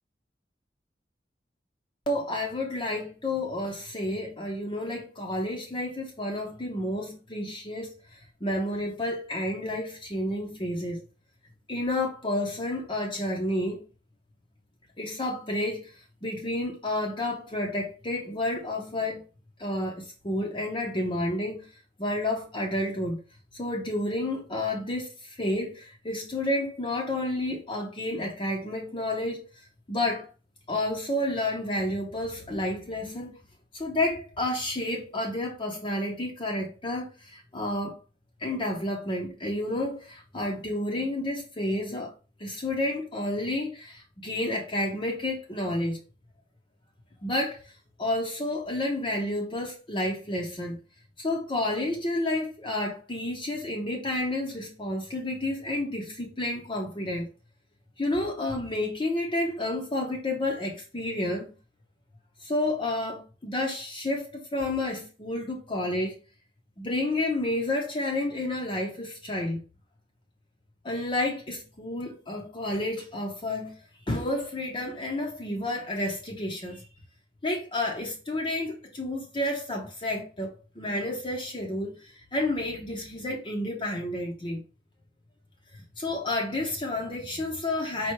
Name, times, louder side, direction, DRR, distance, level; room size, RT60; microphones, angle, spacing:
voice 1, 2.1-11.0 11.7-13.9 15.0-19.2 19.6-21.7 22.0-23.2 23.5-29.4 29.9-30.3 30.7-33.3 33.7-38.0 38.4-42.1 42.4-46.0 47.2-50.8 51.2-57.3 58.0-61.5 62.4-66.2 66.8-69.6 70.8-73.8 74.1-76.9 77.4-84.6 85.7-88.1, left 1 dB, 30° left, 0.7 m, -30 dB
4.5 x 2.3 x 4.5 m
head